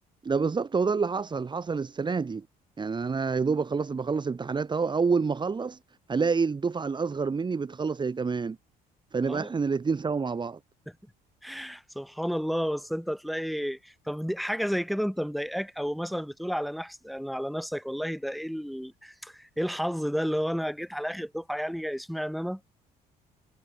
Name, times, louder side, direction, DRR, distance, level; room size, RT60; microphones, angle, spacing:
voice 1, 0.2-2.4 2.8-5.8 6.1-8.6 9.1-10.6, right 5 dB, 25° right, 3.5 m, -28 dB
voice 2, 11.4-22.6, equal, ahead, 6.7 m, -31 dB
cardioid pair, 110°, 17 cm